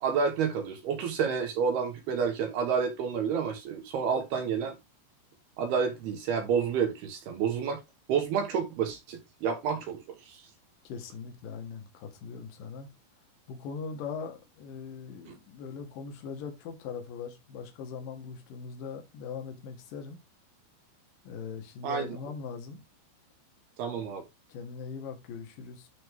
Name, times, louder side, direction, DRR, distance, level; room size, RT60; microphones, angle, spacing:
voice 1, 0.0-4.7 5.6-7.8 8.1-10.4 15.3-15.4 21.8-22.1 23.8-24.2, right 6 dB, 65° right, 2.7 m, -29 dB
voice 2, 10.8-12.9 13.5-20.2 21.2-22.8 24.5-25.9, left 6 dB, 55° left, 2.7 m, -40 dB
12.5 x 4.1 x 3.6 m
omnidirectional pair, 5.9 m